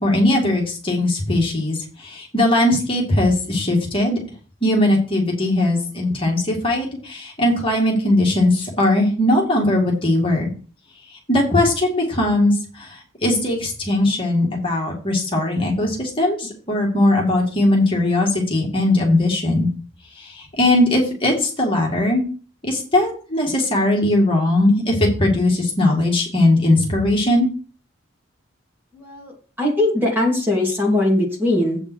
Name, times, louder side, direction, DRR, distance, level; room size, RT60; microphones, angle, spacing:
voice 1, 0.0-4.2 4.6-10.5 11.3-13.0 13.2-19.7 20.2-22.2 22.6-27.5, left 1 dB, 25° left, -1 dB, 2.1 m, -19 dB
voice 2, 28.9-29.3 29.6-31.8, left 1 dB, 10° right, -2 dB, 2.6 m, -20 dB
8.2 x 5.2 x 6.3 m, 0.39 s
head